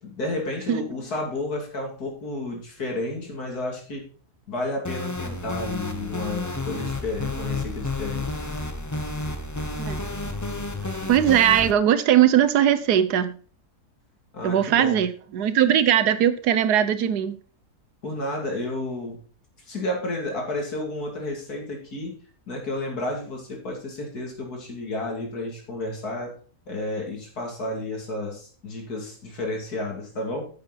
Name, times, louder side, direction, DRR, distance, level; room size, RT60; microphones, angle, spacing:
voice 1, 0.0-4.1 4.5-8.3 14.3-15.0 18.0-19.2 19.7-22.1 22.5-26.3 26.7-30.5, left 2 dB, 75° left, 0 dB, 3.2 m, -31 dB
sound 1, 4.8-11.7, left 2 dB, 20° left, 0.4 m, -31 dB
voice 2, 11.1-13.4 14.4-17.4, right 10 dB, 90° right, 12 dB, 1.4 m, -20 dB
9.6 x 7.4 x 4.1 m, 0.41 s
omnidirectional pair, 1.7 m